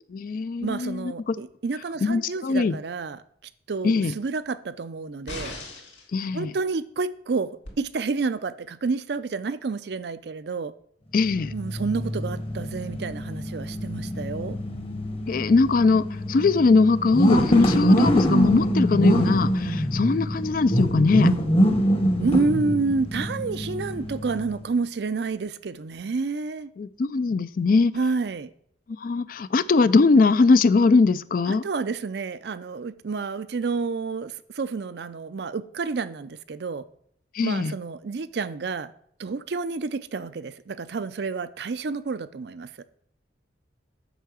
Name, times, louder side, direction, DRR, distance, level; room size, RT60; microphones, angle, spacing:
voice 1, 0.1-1.3 2.0-2.8 3.8-4.1 6.1-6.5 11.1-11.5 15.3-21.3 26.8-27.9 29.0-31.6 37.3-37.7, left 4 dB, 50° left, 0.4 m, -21 dB
voice 2, 0.6-3.2 3.7-5.6 6.3-7.5 7.8-10.7 11.5-14.6 22.2-26.7 27.9-28.5 31.5-36.8 37.4-38.9 39.2-42.7, right 4 dB, 60° right, 0.5 m, -29 dB
sound 1, 5.3-6.1 7.7-7.8, left 2 dB, 80° left, 2.7 m, -37 dB
sound 2, 11.3-24.6, equal, 30° left, 1.0 m, -24 dB
8.0 x 5.6 x 6.3 m
head